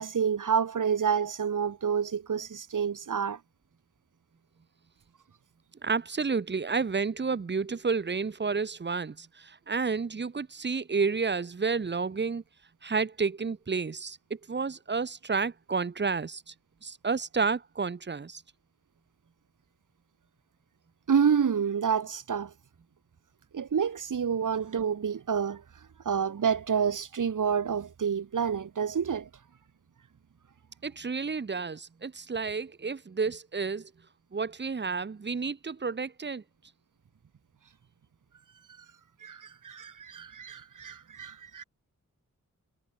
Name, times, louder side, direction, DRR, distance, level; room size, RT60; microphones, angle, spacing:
voice 1, 0.0-3.4 21.1-22.5 23.5-25.6 26.0-29.3 38.8-38.9 39.2-41.6, right 7 dB, 70° right, 1.2 m, -28 dB
voice 2, 5.8-12.4 12.8-16.5 16.8-18.4 30.8-33.9 34.3-36.4, right 4 dB, 35° right, 0.7 m, -31 dB
wide cardioid pair, 110°, 32 cm